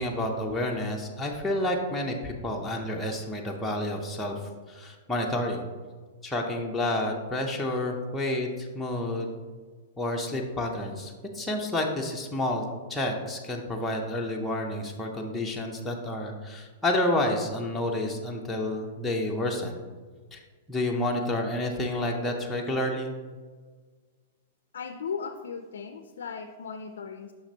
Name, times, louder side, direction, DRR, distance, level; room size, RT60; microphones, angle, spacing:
voice 1, 0.0-4.4 4.7-5.6 6.2-9.3 10.0-12.6 12.9-19.8 20.3-20.4 20.7-23.2, left 1 dB, 5° left, -2 dB, 0.6 m, -29 dB
voice 2, 24.7-27.3, left 6 dB, 85° left, 7 dB, 0.4 m, -37 dB
5.9 x 5.8 x 2.8 m, 1.5 s
hypercardioid pair, 135°, 0 cm